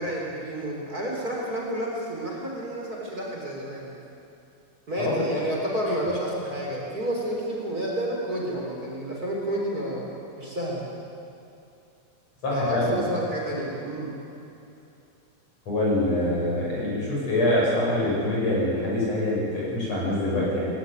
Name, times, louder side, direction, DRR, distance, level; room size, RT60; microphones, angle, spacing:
voice 1, 0.0-3.9 4.9-10.1 10.4-10.9 12.5-14.1, equal, 30° right, -3 dB, 4.2 m, -30 dB
voice 2, 12.4-13.0 15.7-20.7, left 1 dB, 55° left, -5 dB, 8.2 m, -25 dB
19.5 x 18.5 x 9.4 m, 2.7 s
omnidirectional pair, 3.4 m